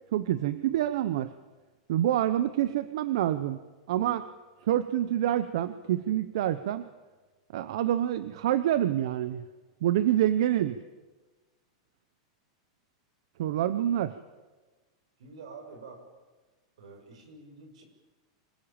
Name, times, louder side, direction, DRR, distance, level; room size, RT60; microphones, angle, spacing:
voice 1, 0.1-1.3 1.9-3.6 3.9-4.3 4.7-6.9 7.5-9.4 9.8-10.8 13.4-14.2, right 12 dB, 60° right, 13 dB, 0.9 m, -27 dB
voice 2, 15.2-16.0 16.8-17.8, right 4 dB, 80° right, 6 dB, 6.8 m, -47 dB
26.0 x 19.5 x 8.9 m, 1.3 s
supercardioid pair, 175°, 3 cm